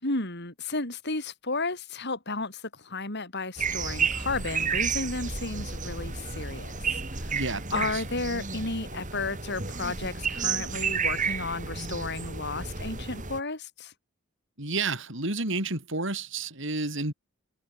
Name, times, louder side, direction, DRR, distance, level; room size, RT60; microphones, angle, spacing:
voice 1, 0.0-7.4 7.7-13.9, left 3 dB, 55° left, 5.0 m, -33 dB
sound 1, 3.6-13.4, right 5 dB, 40° right, 4.2 m, -31 dB
voice 2, 7.3-8.0 14.6-17.1, right 3 dB, 65° right, 7.0 m, -31 dB
head